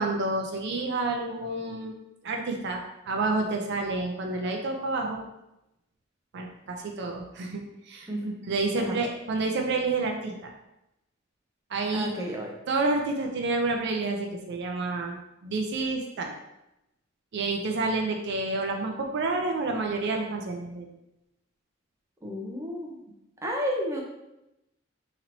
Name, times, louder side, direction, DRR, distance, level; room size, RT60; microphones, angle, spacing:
voice 1, 0.0-1.9 2.2-5.2 6.3-8.1 8.5-10.5 11.7-12.1 12.7-15.2 15.4-16.3 17.3-20.9, right 3 dB, 60° right, 2 dB, 0.4 m, -29 dB
voice 2, 11.9-12.5 22.2-23.0 23.4-24.0, equal, 15° right, -1 dB, 0.6 m, -31 dB
3.0 x 2.9 x 3.8 m, 0.90 s
head